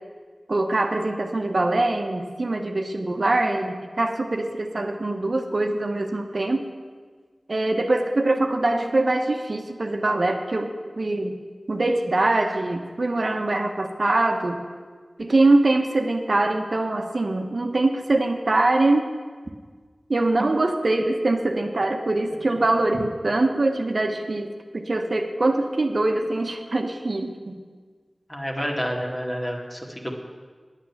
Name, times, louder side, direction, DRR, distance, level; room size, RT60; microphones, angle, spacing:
voice 1, 0.5-6.6 7.5-11.3 11.7-14.6 15.2-19.1 20.1-27.5, right 2 dB, 65° right, 4 dB, 1.0 m, -23 dB
voice 2, 28.3-30.2, equal, 25° left, 0 dB, 2.1 m, -29 dB
10.0 x 8.9 x 7.1 m, 1.5 s
wide cardioid pair, 55°, 0 cm